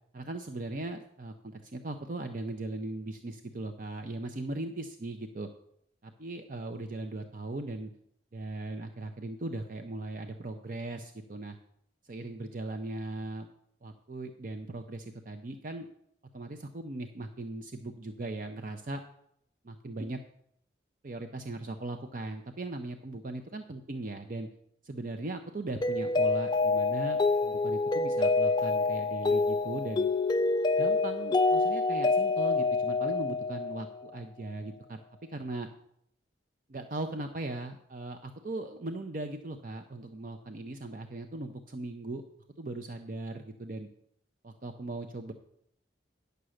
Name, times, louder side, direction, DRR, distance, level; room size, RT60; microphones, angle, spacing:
voice 1, 0.1-5.5 6.0-7.9 8.3-11.6 12.0-13.5 13.8-15.9 16.3-19.0 19.6-20.2 21.0-24.5 24.8-30.1 30.8-35.0 35.3-35.7 36.7-42.2 42.6-43.9 44.4-45.3, right 2 dB, 45° right, 6 dB, 0.6 m, -39 dB
Mallet percussion, 25.8-34.0, left 3 dB, 25° left, 0.3 m, -27 dB
9.9 x 6.8 x 6.4 m, 0.73 s
head